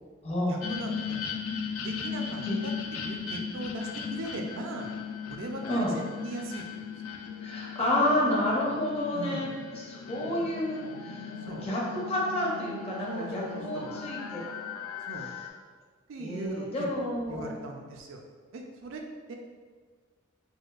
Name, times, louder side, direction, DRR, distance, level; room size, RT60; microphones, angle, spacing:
voice 1, 0.5-1.3 1.8-4.9 5.3-6.9 9.1-9.5 11.4-11.7 13.1-13.9 15.0-15.3 16.1-16.9 17.3-18.2 18.5-19.0 19.3-19.4, right 2 dB, 65° right, 2 dB, 0.4 m, -39 dB
sound 1, 0.6-15.5, left 6 dB, 85° left, 0.3 m, -37 dB
voice 2, 5.6-5.9 7.4-9.5 9.8-14.4 16.2-17.5, left 1 dB, 30° left, -4 dB, 0.6 m, -30 dB
4.2 x 2.2 x 2.3 m, 1.5 s
head